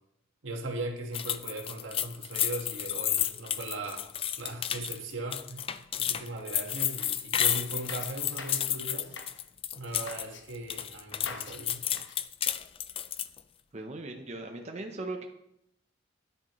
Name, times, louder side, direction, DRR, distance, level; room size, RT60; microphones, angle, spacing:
voice 1, 0.4-4.1 4.4-5.7 6.0-9.1 9.8-11.9, right 2 dB, 85° right, 1 dB, 1.6 m, -38 dB
sound 1, 1.1-10.3 10.5-13.4, left 10 dB, 30° left, 0.3 m, -31 dB
sound 2, 7.0-8.7 9.0-9.4 9.9-10.4 11.1-11.6 11.9-12.2, left 4 dB, 65° left, 1.1 m, -44 dB
voice 2, 13.7-15.3, right 2 dB, 35° right, 3 dB, 0.8 m, -38 dB
10.0 x 9.4 x 3.1 m, 0.80 s
head